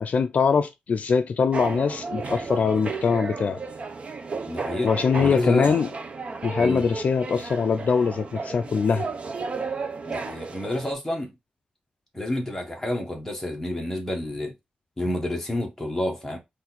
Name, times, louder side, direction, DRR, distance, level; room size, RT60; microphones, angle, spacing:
voice 1, 0.0-3.6 4.8-5.9 6.4-9.1, left 5 dB, 60° left, 0.3 m, -22 dB
sound 1, 1.5-10.9, right 4 dB, 45° right, 0.6 m, -33 dB
voice 2, 4.5-4.9 5.2-5.7 6.5-6.9 10.1-11.3 12.1-14.5 15.0-16.4, left 1 dB, 10° left, 1.3 m, -29 dB
3.9 x 2.6 x 4.1 m
wide cardioid pair, 180°, 3 cm